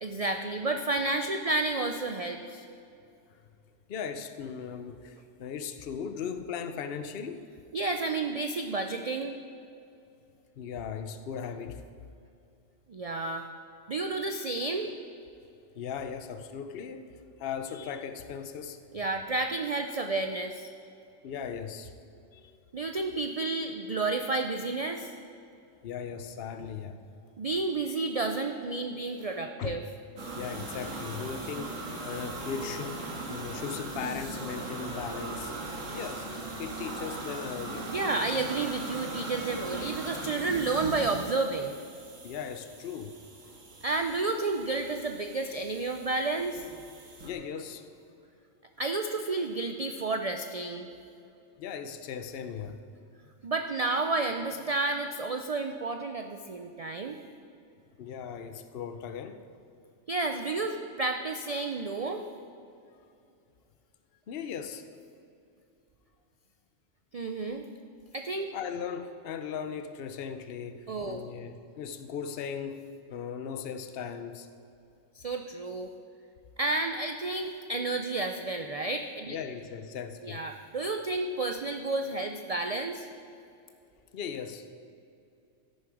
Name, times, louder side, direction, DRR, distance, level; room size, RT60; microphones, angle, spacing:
voice 1, 0.0-2.6 7.7-9.4 12.9-13.5 13.9-14.9 18.9-20.7 22.7-25.1 27.4-29.8 37.9-41.8 43.8-46.7 48.8-50.9 53.4-57.2 60.1-62.3 67.1-67.6 68.1-68.5 70.9-71.2 75.2-75.9 76.6-79.4 80.2-83.1, right 3 dB, 50° right, 5 dB, 0.4 m, -31 dB
voice 2, 3.9-7.4 10.6-11.8 15.7-17.1 17.4-18.8 21.2-21.9 22.3-22.6 25.8-27.0 29.6-29.8 30.3-35.5 35.9-37.9 42.2-43.1 47.2-47.9 51.6-52.8 58.0-59.4 64.3-64.9 68.5-72.8 73.1-74.5 79.3-80.4 84.1-84.7, left 7 dB, 55° left, 9 dB, 0.9 m, -38 dB
sound 1, 30.2-47.3, right 2 dB, 85° right, 1.9 m, -39 dB
13.5 x 10.5 x 4.9 m, 2.6 s
omnidirectional pair, 1.3 m